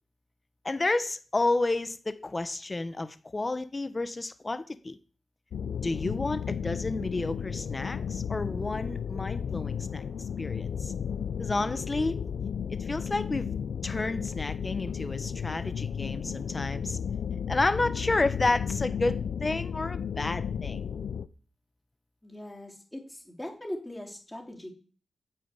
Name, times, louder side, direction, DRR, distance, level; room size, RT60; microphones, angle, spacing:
voice 1, 0.6-5.0 5.8-10.0 10.4-10.9 11.4-12.2 12.7-13.5 13.8-17.0 17.5-20.9, left 2 dB, 25° left, 0.8 m, -31 dB
sound 1, 5.5-21.3, left 7 dB, 85° left, 0.5 m, -33 dB
voice 2, 22.2-24.7, left 1 dB, 5° left, 3.3 m, -40 dB
9.2 x 8.6 x 8.2 m
wide cardioid pair, 135°, 0 cm